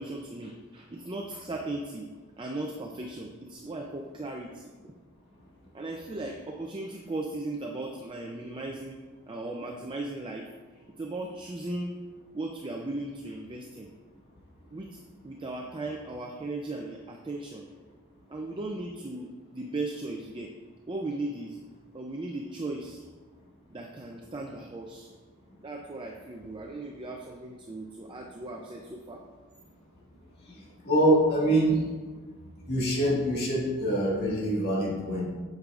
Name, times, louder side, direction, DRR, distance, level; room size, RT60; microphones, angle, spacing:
voice 1, 0.0-2.1 2.4-4.9 5.7-9.0 9.3-10.5 11.0-12.0 12.3-13.9 14.7-17.7 18.3-20.5 20.9-21.6 21.9-23.0 23.7-25.1 25.6-29.2, right 2 dB, 25° right, 1 dB, 0.4 m, -37 dB
voice 2, 30.5-31.8 32.7-35.3, right 1 dB, 50° left, -5 dB, 1.7 m, -25 dB
8.0 x 6.7 x 2.4 m, 1.4 s
head